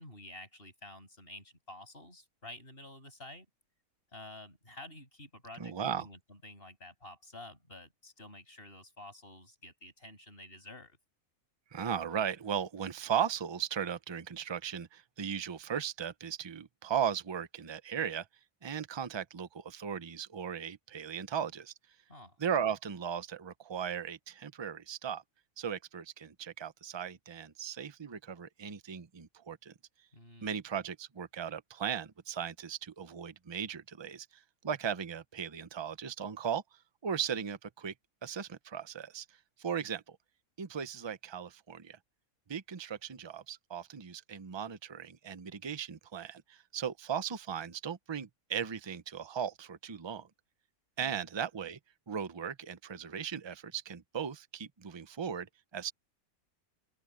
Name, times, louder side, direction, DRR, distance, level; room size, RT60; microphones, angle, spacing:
voice 1, 0.0-3.5 4.1-11.0 22.1-22.4 30.1-30.5 51.0-51.2, left 1 dB, 40° left, 8.1 m, -50 dB
voice 2, 5.6-6.1 11.7-18.3 18.6-21.7 22.4-25.2 25.6-29.7 30.4-37.9 38.2-40.2 40.6-42.0 42.5-50.3 51.0-51.8 52.1-55.9, right 8 dB, 30° right, 0.5 m, -37 dB
open air
omnidirectional pair, 1.6 m